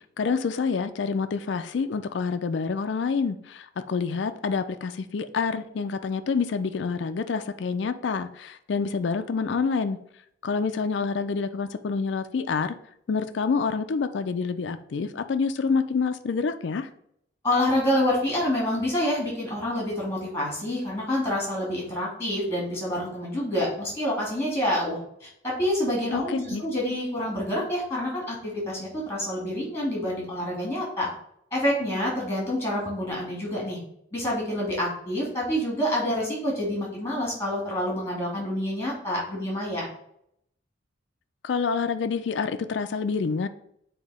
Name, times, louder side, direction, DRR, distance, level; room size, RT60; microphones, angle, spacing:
voice 1, 0.2-10.0 10.4-12.7 13.1-16.9 26.1-26.6 41.4-43.5, left 5 dB, 70° left, 9 dB, 0.4 m, -27 dB
voice 2, 17.4-31.1 31.5-33.8 34.1-39.8, left 1 dB, 15° left, -3 dB, 2.4 m, -27 dB
7.3 x 2.8 x 4.8 m, 0.72 s
head